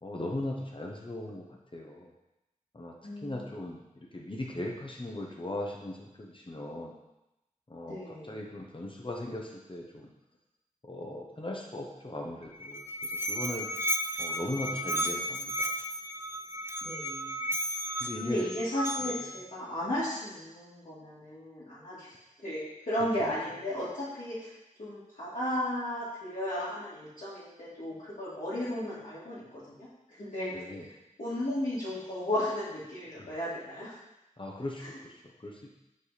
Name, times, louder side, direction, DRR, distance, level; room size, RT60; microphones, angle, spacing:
voice 1, 0.0-1.5 1.7-2.1 2.7-2.9 3.2-3.8 4.1-7.0 7.7-10.1 10.8-13.7 14.2-15.5 18.0-18.5 19.0-19.1 23.2-23.3 30.5-30.9 33.2-33.3 34.4-35.1 35.4-35.7, left 1 dB, 40° left, -1 dB, 1.1 m, -38 dB
voice 2, 3.0-3.6 7.9-8.4 16.8-17.5 18.2-22.1 22.4-24.5 24.8-30.5 31.2-33.9 34.8-34.9, left 1 dB, 80° left, -14 dB, 2.2 m, -35 dB
Musical instrument, 12.4-19.4, equal, 20° right, 0.4 m, -34 dB
5.3 x 5.1 x 4.2 m, 0.91 s
wide cardioid pair, 45°, 13 cm